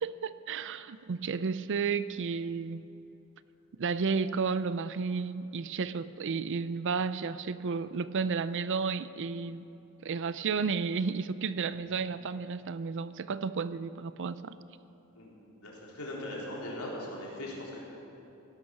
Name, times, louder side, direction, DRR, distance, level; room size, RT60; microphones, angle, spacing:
voice 1, 0.0-2.9 3.8-9.7 10.0-14.6, right 5 dB, 60° right, 15 dB, 0.5 m, -32 dB
voice 2, 15.1-17.8, left 1 dB, 80° left, -4 dB, 3.9 m, -40 dB
17.0 x 12.0 x 6.0 m, 2.9 s
head